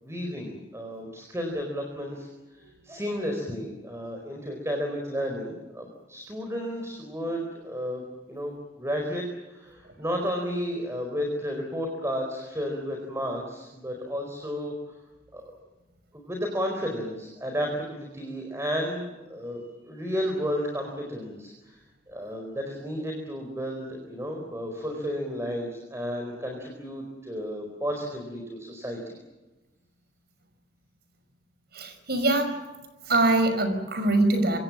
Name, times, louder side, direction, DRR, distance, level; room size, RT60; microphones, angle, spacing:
voice 1, 0.0-15.0 15.3-15.6 16.1-29.2, equal, 15° right, 2 dB, 4.5 m, -33 dB
voice 2, 31.8-32.6 33.1-34.6, right 2 dB, 60° right, 8 dB, 5.7 m, -23 dB
26.0 x 26.0 x 7.3 m, 1.1 s
head